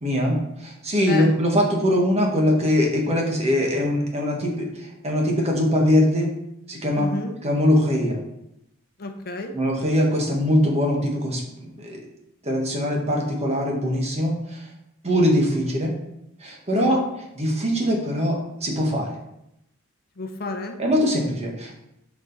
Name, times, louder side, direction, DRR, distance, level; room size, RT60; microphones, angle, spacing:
voice 1, 0.0-6.4 6.7-7.1 7.4-8.2 9.5-12.0 12.4-14.7 15.0-15.9 16.4-17.0 17.3-19.2 20.8-21.8, equal, 30° right, 0 dB, 1.3 m, -22 dB
voice 2, 6.9-7.3 9.0-9.5 16.7-17.0 20.2-20.8, left 2 dB, 45° left, 5 dB, 0.7 m, -31 dB
6.4 x 4.9 x 4.0 m, 0.83 s
head